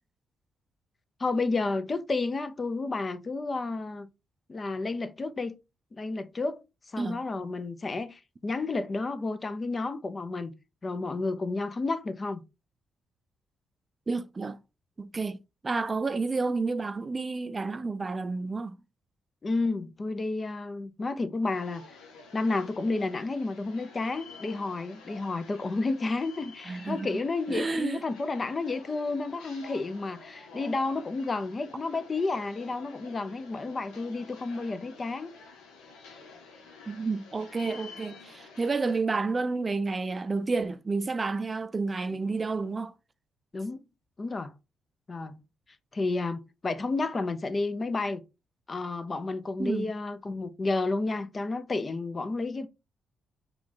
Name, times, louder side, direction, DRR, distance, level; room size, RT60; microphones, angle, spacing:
voice 1, 1.2-4.1 4.5-5.5 6.0-6.6 6.9-10.5 10.8-12.4 19.4-21.8 22.3-35.3 43.5-43.8 44.2-44.5 45.1-45.4 45.9-48.2 48.7-52.7, left 3 dB, 40° left, 0.6 m, -31 dB
voice 2, 14.1-14.6 15.0-15.4 15.6-18.7 26.7-27.2 27.5-28.0 36.9-42.9 49.6-49.9, right 3 dB, 35° right, 0.4 m, -30 dB
sound 1, 21.5-39.0, left 4 dB, 90° left, 1.0 m, -50 dB
4.5 x 2.4 x 4.0 m
supercardioid pair, 55°, 0 cm